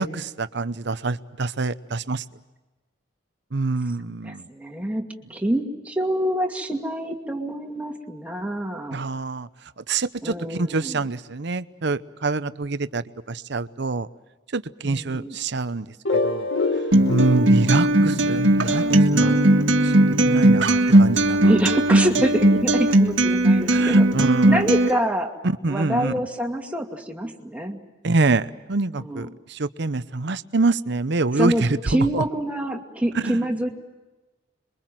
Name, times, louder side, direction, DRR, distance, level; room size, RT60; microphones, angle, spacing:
voice 1, 0.0-2.2 3.5-4.4 8.9-9.5 9.9-14.1 14.5-15.9 16.1-16.5 17.1-18.8 19.1-19.4 19.8-21.5 23.7-24.6 25.4-26.1 28.0-32.2 33.2-33.3, right 3 dB, 65° right, 14 dB, 0.8 m, -25 dB
voice 2, 4.2-9.0 10.2-11.0 14.8-15.4 18.3-18.8 21.4-24.1 24.4-25.3 25.7-27.8 29.0-29.3 31.3-33.7, right 1 dB, 10° right, 1 dB, 2.4 m, -26 dB
sound 1, 16.1-20.6, left 2 dB, 80° left, 1.8 m, -28 dB
Acoustic guitar, 16.9-24.9, right 1 dB, 85° right, 1.8 m, -18 dB
27.0 x 23.0 x 7.6 m, 1.1 s
head